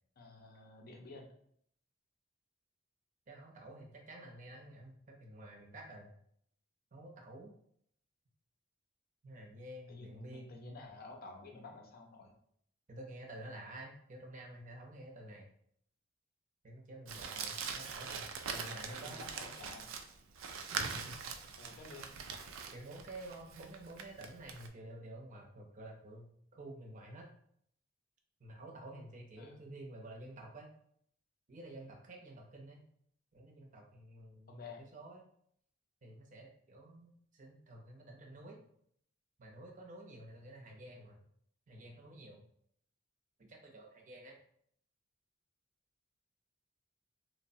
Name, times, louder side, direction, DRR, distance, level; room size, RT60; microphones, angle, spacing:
voice 1, 0.2-1.3 9.9-12.3 18.7-19.9 20.8-20.9 21.6-22.1 29.4-29.6 34.5-34.9, left 3 dB, 50° left, 1 dB, 0.5 m, -51 dB
voice 2, 3.3-6.1 6.9-7.5 9.2-10.6 12.9-15.5 16.6-19.3 20.7-21.2 22.7-27.3 28.4-30.7 31.5-32.8 33.3-35.2 36.0-38.6 39.4-41.2 41.7-42.4 43.4-44.4, right 1 dB, 40° right, 0 dB, 0.6 m, -50 dB
Crumpling crinkling, 17.1-24.7, right 5 dB, 85° right, 0.3 m, -43 dB
3.0 x 2.0 x 2.6 m, 0.67 s
head